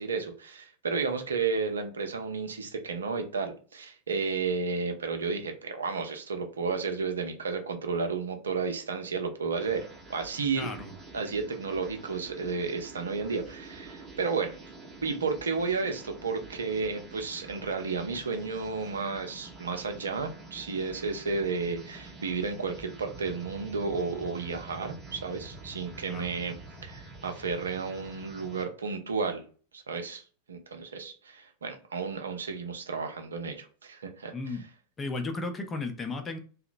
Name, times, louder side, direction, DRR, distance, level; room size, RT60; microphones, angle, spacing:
voice 1, 0.0-10.8 11.1-14.6 15.0-26.6 26.8-29.4 29.7-30.2 30.5-34.3, right 4 dB, 70° right, 6 dB, 0.5 m, -32 dB
sound 1, 9.6-28.7, right 3 dB, 20° right, 0.7 m, -47 dB
voice 2, 10.6-10.9 26.1-26.3 34.3-34.6 35.0-36.4, left 3 dB, 20° left, 6 dB, 0.5 m, -34 dB
2.8 x 2.0 x 2.5 m, 0.40 s
figure-of-eight pair, 90°, 0 cm